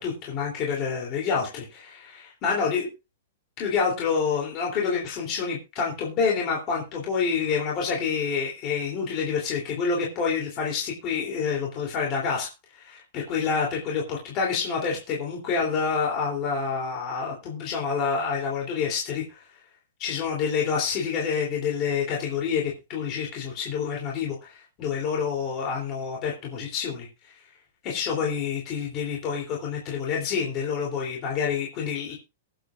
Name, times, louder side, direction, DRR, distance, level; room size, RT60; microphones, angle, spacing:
voice 1, 0.0-2.9 3.6-19.4 20.0-27.1 27.8-32.2, left 6 dB, 25° left, -2 dB, 3.2 m, -28 dB
22.0 x 7.9 x 2.5 m, 0.28 s
hypercardioid pair, 170°, 0 cm